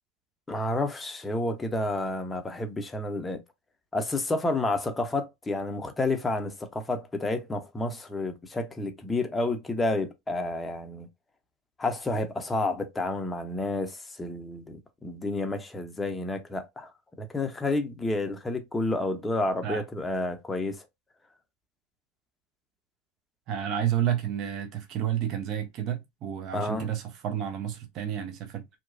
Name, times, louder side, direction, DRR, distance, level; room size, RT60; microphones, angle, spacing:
voice 1, 0.5-3.4 3.9-11.1 11.8-16.9 17.2-20.9 26.5-26.9, left 2 dB, 15° left, 0.7 m, -30 dB
voice 2, 23.5-28.6, right 10 dB, 45° right, 0.7 m, -30 dB
2.9 x 2.2 x 2.6 m
hypercardioid pair, 90°, 0 cm